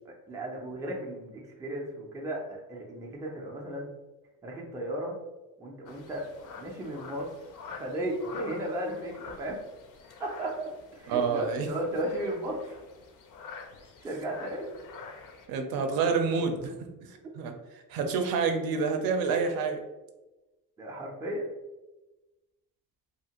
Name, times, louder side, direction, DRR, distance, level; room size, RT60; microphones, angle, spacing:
voice 1, 0.1-3.9 4.4-5.2 5.6-6.3 6.6-7.3 7.7-9.6 10.2-12.8 14.0-14.7 20.8-21.5, right 1 dB, 10° right, -2 dB, 0.3 m, -35 dB
sound 1, 5.9-15.5, left 5 dB, 60° left, 0.5 m, -47 dB
voice 2, 11.1-11.7 15.5-16.8 17.1-17.5 17.9-19.8, right 5 dB, 80° right, 5 dB, 0.5 m, -28 dB
2.8 x 2.4 x 2.8 m, 1.1 s
cardioid pair, 160°, 35 cm